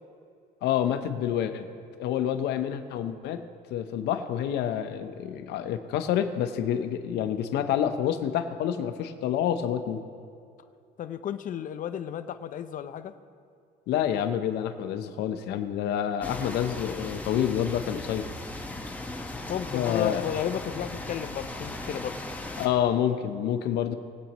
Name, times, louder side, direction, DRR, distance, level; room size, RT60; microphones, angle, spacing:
voice 1, 0.6-1.7 2.0-3.4 3.7-10.0 13.9-18.3 19.7-20.2 22.6-23.9, left 9 dB, 85° left, 8 dB, 0.9 m, -28 dB
voice 2, 11.0-13.1 19.5-22.1, left 9 dB, 50° left, 11 dB, 0.6 m, -33 dB
sound 1, 16.2-22.7, left 2 dB, 10° left, 1.2 m, -37 dB
21.0 x 8.5 x 3.0 m, 2.4 s
cardioid pair, 110°, 17 cm